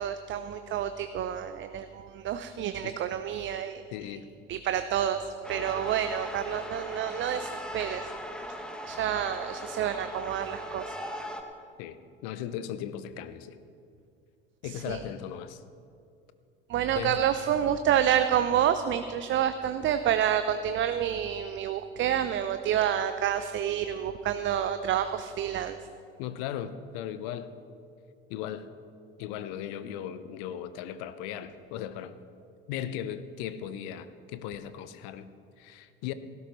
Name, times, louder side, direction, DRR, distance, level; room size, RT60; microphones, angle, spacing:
voice 1, 0.0-3.8 4.5-5.2 5.5-8.1 8.9-10.9 14.7-15.0 16.7-25.8, right 10 dB, 40° right, 10 dB, 0.7 m, -28 dB
voice 2, 3.9-4.3 11.8-12.0 12.2-13.6 14.6-15.6 17.0-17.2 26.2-27.5 28.3-28.7 29.2-32.2 32.7-35.3 35.6-36.1, left 10 dB, 60° left, 12 dB, 0.8 m, -37 dB
sound 1, 5.4-11.4, equal, 5° left, 1.5 m, -39 dB
17.5 x 16.0 x 3.2 m, 2.4 s
figure-of-eight pair, 65°, 29 cm